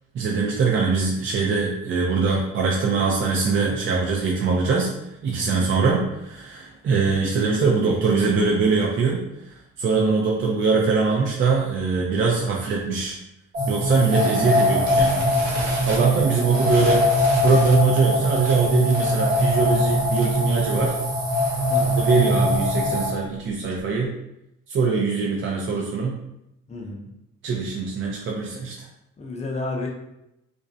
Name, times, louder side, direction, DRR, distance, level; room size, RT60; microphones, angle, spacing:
voice 1, 0.1-4.9 5.2-9.2 9.8-13.2 13.7-15.2 15.8-17.0 17.4-20.9 22.0-24.1 24.7-26.2 27.4-28.9, right 4 dB, 40° right, -2 dB, 0.4 m, -22 dB
voice 2, 5.5-5.9 14.2-14.6 16.1-16.9 21.7-22.0 26.7-27.1 29.2-29.9, left 2 dB, 25° left, 0 dB, 0.5 m, -33 dB
sound 1, 13.5-23.1, left 1 dB, 60° right, 1.1 m, -22 dB
sound 2, 14.9-20.5 20.8-21.0 21.3-21.4 21.7-22.0 22.5-24.0, right 2 dB, 80° right, 0.7 m, -36 dB
2.5 x 2.0 x 2.5 m, 0.84 s
cardioid pair, 90°, 30 cm